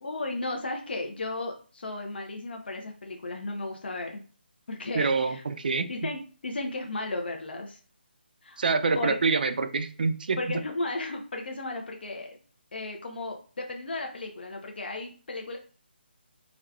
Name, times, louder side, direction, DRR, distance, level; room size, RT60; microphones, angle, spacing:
voice 1, 0.0-4.2 4.7-5.4 5.9-7.8 8.4-8.6 8.9-9.2 10.4-12.4 12.7-15.6, left 2 dB, 65° left, 2 dB, 0.6 m, -34 dB
voice 2, 4.9-5.9 8.6-10.4, right 4 dB, 50° right, 9 dB, 0.4 m, -26 dB
4.7 x 2.3 x 2.3 m, 0.39 s
hypercardioid pair, 170°, 6 cm